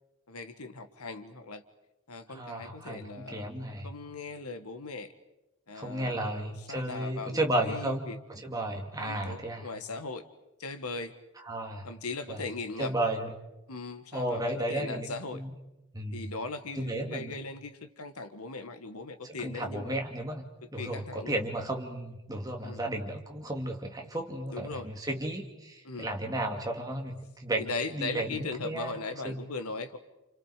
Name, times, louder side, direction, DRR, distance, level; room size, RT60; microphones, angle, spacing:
voice 1, 0.3-1.6 2.1-3.5 3.8-5.1 5.7-8.2 9.0-10.2 10.6-11.1 11.8-12.9 13.7-14.4 14.7-15.4 16.1-20.0 20.8-21.3 22.6-22.8 24.5-24.9 25.8-26.1 27.6-30.0, left 3 dB, 85° left, 10 dB, 1.8 m, -39 dB
voice 2, 2.3-3.9 5.7-8.0 8.3-9.7 11.4-11.9 12.3-12.5 12.8-13.3 14.1-15.5 15.9-16.2 16.7-17.3 19.2-20.5 20.7-29.0 29.2-29.4, right 1 dB, 15° right, 2 dB, 2.6 m, -33 dB
29.5 x 29.0 x 5.1 m, 0.97 s
head